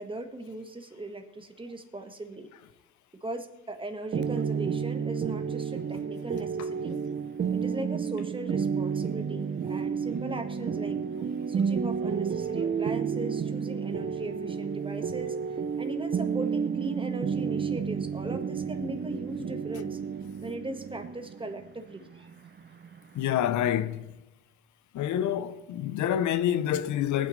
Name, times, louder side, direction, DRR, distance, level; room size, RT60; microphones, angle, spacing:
voice 1, 0.0-2.5 3.2-7.0 7.5-11.0 11.5-20.0 20.4-22.3, right 2 dB, 15° right, 1.5 m, -38 dB
sound 1, 4.1-23.7, right 6 dB, 35° right, 0.6 m, -31 dB
voice 2, 23.1-24.2 24.9-27.3, left 10 dB, 75° left, 0.7 m, -27 dB
21.0 x 9.6 x 3.2 m
cardioid pair, 90°, 30 cm